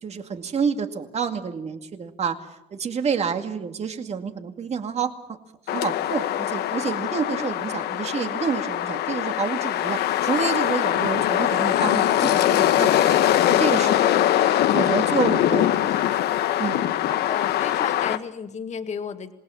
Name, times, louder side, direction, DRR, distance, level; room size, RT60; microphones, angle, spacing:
voice 1, 0.0-5.1 5.7-13.2 13.5-14.5 14.7-16.1 16.6-16.8, right 6 dB, 40° right, 7 dB, 2.3 m, -29 dB
sound 1, 5.7-18.2, left 12 dB, 75° left, 1.2 m, -22 dB
voice 2, 17.1-19.3, left 6 dB, 45° left, 7 dB, 2.0 m, -33 dB
27.0 x 19.5 x 7.2 m, 0.89 s
cardioid pair, 110°, 17 cm